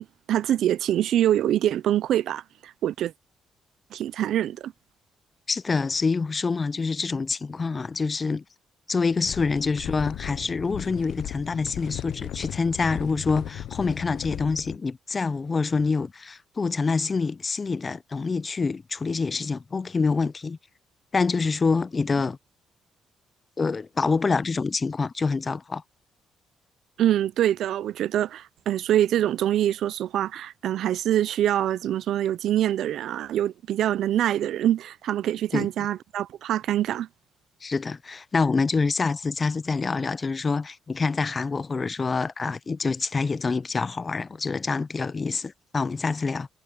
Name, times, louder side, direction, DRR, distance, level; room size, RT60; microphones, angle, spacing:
voice 1, 0.0-3.1 3.9-4.7 27.0-37.1, right 11 dB, 75° right, 0.5 m, -25 dB
voice 2, 5.5-8.4 8.9-20.6 21.1-22.4 23.6-25.8 35.5-35.7 37.6-46.5, left 4 dB, 30° left, 0.5 m, -26 dB
sound 1, 9.2-14.8, left 12 dB, 75° left, 0.6 m, -36 dB
cardioid pair, 90°, 0 cm